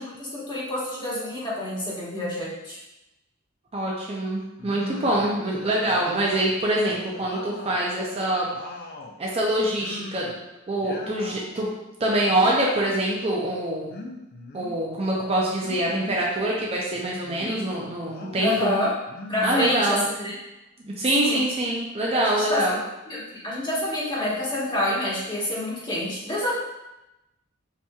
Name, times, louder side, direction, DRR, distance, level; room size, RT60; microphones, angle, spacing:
voice 1, 0.0-2.8 17.4-17.7 18.4-18.9 19.3-20.3 21.1-21.4 22.1-22.8 23.1-26.5, left 1 dB, 20° left, -6 dB, 1.3 m, -28 dB
voice 2, 3.7-8.5 9.2-10.3 10.7-11.7 12.0-13.9 14.5-18.7 19.4-20.0 20.9-22.8, right 1 dB, 30° right, -3 dB, 0.5 m, -25 dB
sound 1, 4.6-5.4 5.8-7.8 8.2-9.2 9.8-10.4 10.7-11.4 12.3-13.1 13.9-14.8 15.6-16.3 16.9-17.6 18.1-18.7 19.1-20.2, left 2 dB, 45° left, 0.5 m, -40 dB
7.0 x 2.9 x 2.4 m, 0.95 s
head